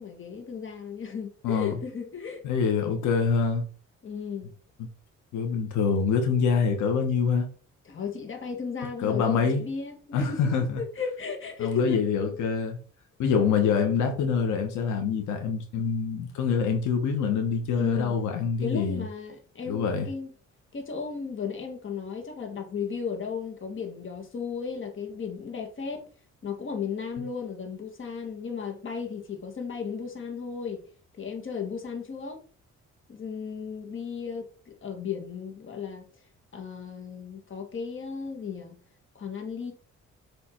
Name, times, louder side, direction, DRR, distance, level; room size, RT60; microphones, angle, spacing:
voice 1, 0.0-2.4 4.0-4.5 7.9-12.0 17.8-18.1 18.6-20.3 20.7-26.0 26.4-30.8 31.2-32.4 33.1-36.0 36.5-38.8 39.2-39.7, left 5 dB, 45° left, 1.8 m, -35 dB
voice 2, 1.4-1.7 2.4-3.7 4.8-4.9 5.3-7.5 9.0-9.6 10.1-10.8 11.6-12.8 13.2-19.0 19.7-20.1, left 6 dB, 90° left, 1.3 m, -25 dB
7.1 x 3.4 x 4.5 m
cardioid pair, 95°, 29 cm